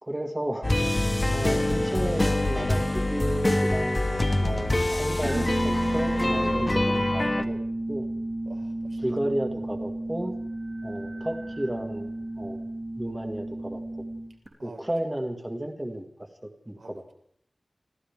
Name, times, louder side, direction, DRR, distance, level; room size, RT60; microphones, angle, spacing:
voice 1, 0.0-0.7 1.3-7.6 7.9-8.1 9.0-10.3 10.8-12.6 13.0-13.8 14.6-16.0 16.4-17.1, right 1 dB, 20° right, 2 dB, 2.1 m, -33 dB
sound 1, 0.6-7.4, left 1 dB, 30° left, 1.2 m, -25 dB
sound 2, 5.2-14.5, right 1 dB, 45° right, 3.7 m, -32 dB
voice 2, 8.5-9.2 14.6-14.9 16.8-17.1, right 3 dB, 85° right, 3 dB, 2.6 m, -49 dB
27.0 x 14.0 x 3.7 m, 0.68 s
wide cardioid pair, 75°, 0 cm